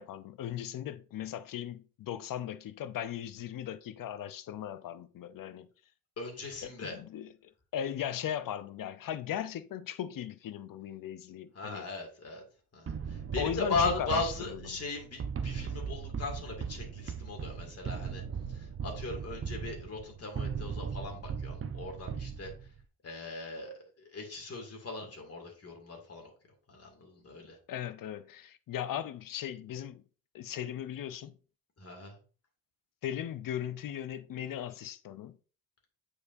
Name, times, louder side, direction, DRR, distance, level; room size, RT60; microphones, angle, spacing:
voice 1, 0.0-5.7 6.6-7.3 7.7-11.9 13.4-14.8 27.7-30.0 30.3-31.4 33.0-35.4, left 10 dB, 65° left, 0.7 m, -38 dB
voice 2, 6.2-7.0 11.5-12.4 12.7-12.9 13.3-18.2 18.8-22.5 23.0-23.7 24.1-26.3 26.7-27.6 31.8-32.1, left 3 dB, 40° left, 2.4 m, -37 dB
sound 1, 12.9-22.8, right 6 dB, 35° right, 0.8 m, -38 dB
8.4 x 4.9 x 2.6 m
cardioid pair, 90°, 36 cm